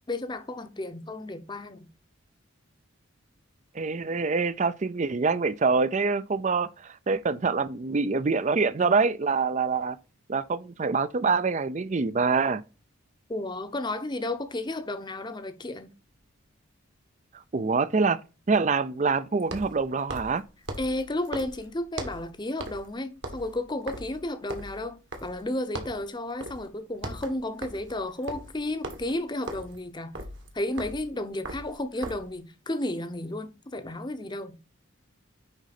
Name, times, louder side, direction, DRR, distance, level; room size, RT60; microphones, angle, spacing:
voice 1, 0.1-1.9 13.3-15.9 20.8-30.1 30.5-34.6, left 1 dB, 20° left, 0.7 m, -33 dB
voice 2, 3.7-10.0 10.3-12.6 17.5-18.2 18.5-20.4, right 4 dB, 35° right, 0.4 m, -25 dB
sound 1, 16.1-16.2 19.4-22.3 22.6-22.9 23.2-25.5 25.7-26.1 26.4-26.7 26.9-32.3, right 1 dB, 60° right, 1.6 m, -39 dB
9.8 x 3.9 x 4.1 m
head